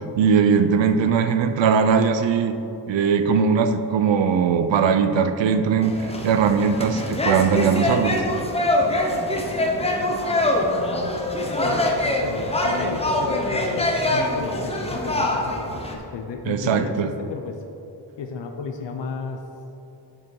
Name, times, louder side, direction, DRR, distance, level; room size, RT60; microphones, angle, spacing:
voice 1, 0.2-2.6 2.9-8.2 16.5-17.1, right 6 dB, 75° right, 9 dB, 0.6 m, -20 dB
sound 1, 5.8-16.0, left 1 dB, 15° left, 0.7 m, -24 dB
voice 2, 11.5-17.6 18.2-19.4, left 5 dB, 70° left, 4 dB, 0.6 m, -34 dB
8.6 x 4.7 x 4.6 m, 2.9 s
wide cardioid pair, 145°, 45 cm